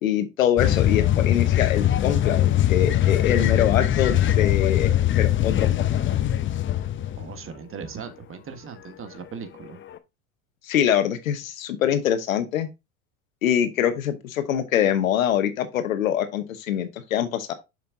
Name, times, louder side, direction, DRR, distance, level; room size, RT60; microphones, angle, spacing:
voice 1, 0.0-6.0 10.7-12.7 13.4-17.5, left 10 dB, 90° left, 1.1 m, -24 dB
sound 1, 0.6-7.4 9.9-10.0, left 12 dB, 30° left, 0.7 m, -21 dB
voice 2, 7.2-9.8, right 6 dB, 30° right, 1.4 m, -38 dB
6.8 x 6.5 x 2.7 m
hypercardioid pair, 90°, 40 cm